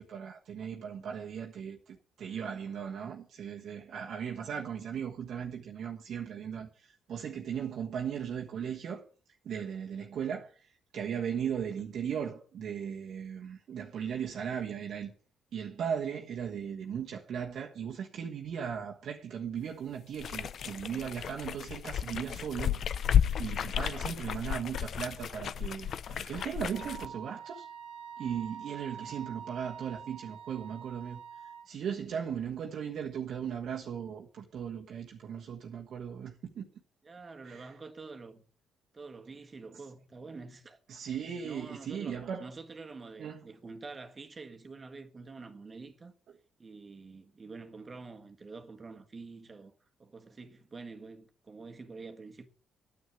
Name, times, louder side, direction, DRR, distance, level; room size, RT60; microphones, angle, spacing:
voice 1, 0.0-9.0 9.4-15.1 15.5-23.1 23.4-27.7 28.2-31.2 31.6-36.7 37.5-37.7 40.9-42.5 43.2-43.4, right 8 dB, 65° right, 1.4 m, -37 dB
sound 1, 20.1-27.1, left 9 dB, 60° left, 0.6 m, -32 dB
Wind instrument woodwind instrument, 26.7-31.7, right 7 dB, 80° right, 1.5 m, -46 dB
voice 2, 37.0-38.4 38.9-40.8 41.4-46.1 46.6-49.7 50.0-52.5, right 4 dB, 30° right, 1.7 m, -47 dB
9.6 x 8.4 x 8.4 m
cardioid pair, 90°, 0 cm